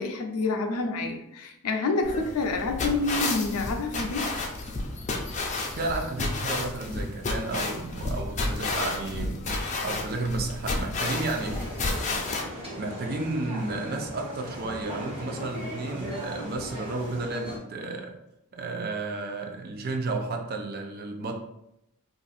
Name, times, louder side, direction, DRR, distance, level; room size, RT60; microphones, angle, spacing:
voice 1, 0.0-4.3, left 3 dB, 85° left, 3 dB, 0.5 m, -28 dB
sound 1, 2.0-12.4, left 2 dB, 35° left, 0.5 m, -31 dB
voice 2, 5.7-9.4 9.8-11.6 12.5-18.2 18.5-21.3, right 3 dB, 45° right, 3 dB, 0.5 m, -32 dB
sound 2, 11.0-17.6, equal, 25° right, 1.2 m, -38 dB
2.6 x 2.5 x 4.0 m, 0.83 s
head